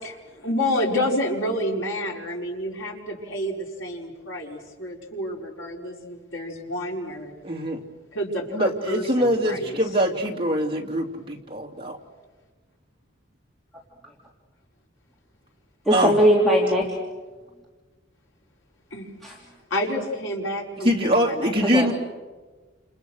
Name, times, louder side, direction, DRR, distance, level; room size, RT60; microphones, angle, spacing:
voice 1, 0.0-7.3 8.1-9.8 18.9-19.1 19.7-21.9, left 1 dB, 80° left, -1 dB, 5.4 m, -29 dB
voice 2, 7.4-7.8 8.5-12.0 15.9-16.2 20.8-21.9, equal, 25° right, 1 dB, 2.9 m, -23 dB
voice 3, 15.8-16.9 19.2-19.3 21.7-21.9, equal, ahead, -3 dB, 3.0 m, -19 dB
29.5 x 28.0 x 6.5 m, 1.3 s
head